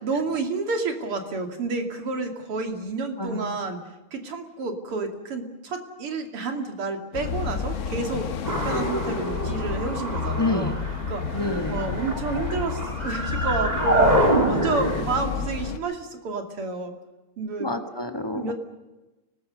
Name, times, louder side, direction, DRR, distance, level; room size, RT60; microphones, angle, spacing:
voice 1, 0.0-3.8 4.1-10.7 11.1-11.2 11.7-16.9 17.4-17.7 18.3-18.5, right 3 dB, 80° right, 5 dB, 3.5 m, -30 dB
voice 2, 3.2-3.5 10.4-10.8 11.3-11.8 17.6-18.5, left 2 dB, 10° left, 6 dB, 1.7 m, -28 dB
sound 1, 7.1-15.8, left 6 dB, 50° left, 1.0 m, -30 dB
sound 2, 8.4-15.0, right 1 dB, 20° right, 3.2 m, -26 dB
29.5 x 19.5 x 6.7 m, 1.1 s
omnidirectional pair, 2.4 m